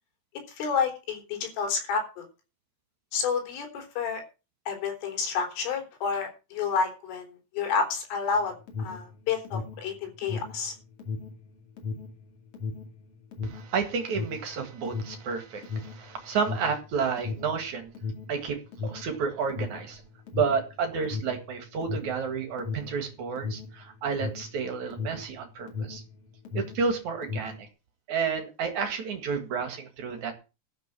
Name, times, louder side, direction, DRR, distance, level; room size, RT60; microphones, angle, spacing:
voice 1, 0.6-2.3 3.1-4.2 4.7-7.3 7.5-8.5 8.8-10.7, left 5 dB, 70° left, 5.9 m, -29 dB
Alarm, 8.3-26.1 26.4-27.7, left 4 dB, 40° left, 2.1 m, -36 dB
voice 2, 13.4-17.9 18.3-20.0 20.3-26.0 26.5-27.6 28.1-30.3, right 5 dB, 55° right, 2.1 m, -31 dB
13.0 x 6.8 x 7.4 m
omnidirectional pair, 6.0 m